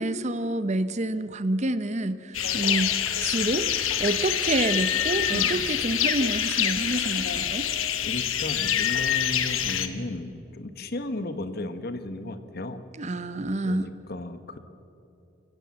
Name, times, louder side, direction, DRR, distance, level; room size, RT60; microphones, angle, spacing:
voice 1, 0.0-3.7 4.0-7.6 13.0-13.9, right 2 dB, 35° right, 13 dB, 0.8 m, -28 dB
sound 1, 2.3-9.9, left 9 dB, 90° left, 1.2 m, -26 dB
voice 2, 5.3-5.6 8.0-12.8 13.6-14.6, left 2 dB, 50° left, 10 dB, 1.1 m, -34 dB
24.0 x 15.5 x 7.5 m, 2.8 s
head